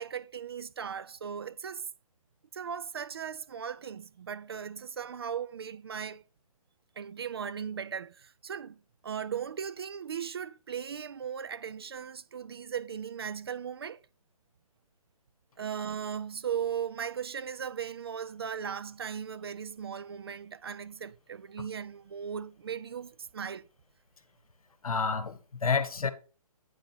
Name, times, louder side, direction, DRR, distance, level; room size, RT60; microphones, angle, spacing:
voice 1, 0.0-1.9 2.5-6.2 7.0-8.8 9.0-14.0 15.6-23.7, right 7 dB, 40° right, 0.4 m, -37 dB
voice 2, 24.8-26.1, left 5 dB, 65° left, 1.2 m, -29 dB
9.6 x 3.9 x 6.0 m
figure-of-eight pair, 140°, 19 cm